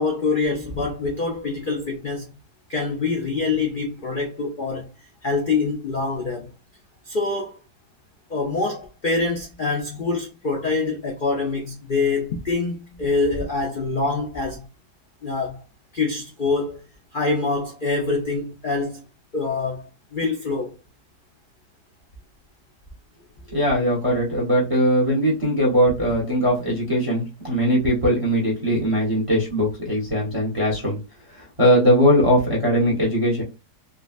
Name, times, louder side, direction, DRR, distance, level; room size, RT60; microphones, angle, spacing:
voice 1, 0.0-2.3 2.7-4.9 5.2-6.5 7.1-7.6 8.3-14.6 15.2-15.6 15.9-16.8 17.1-19.0 19.3-19.8 20.1-20.7, left 3 dB, 85° left, 0.4 m, -25 dB
voice 2, 23.5-31.0 31.3-33.4, equal, 25° right, 0.9 m, -20 dB
3.7 x 2.1 x 2.4 m
omnidirectional pair, 1.8 m